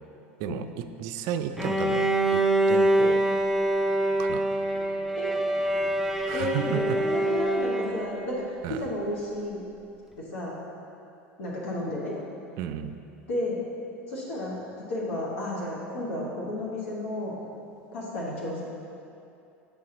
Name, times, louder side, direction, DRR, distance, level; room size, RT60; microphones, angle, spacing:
voice 1, 1.0-2.4 2.7-3.2 4.2-4.4 6.3-6.8 8.6-8.9 12.6-12.9, right 9 dB, 60° right, 9 dB, 0.3 m, -33 dB
Bowed string instrument, 1.6-8.3, right 1 dB, ahead, 0.5 m, -25 dB
voice 2, 6.3-9.6 10.2-10.6 11.4-12.1 13.3-13.6 14.1-17.3 17.9-18.6, left 1 dB, 75° left, -5 dB, 1.1 m, -32 dB
6.8 x 4.3 x 3.7 m, 2.7 s
hypercardioid pair, 85°, 7 cm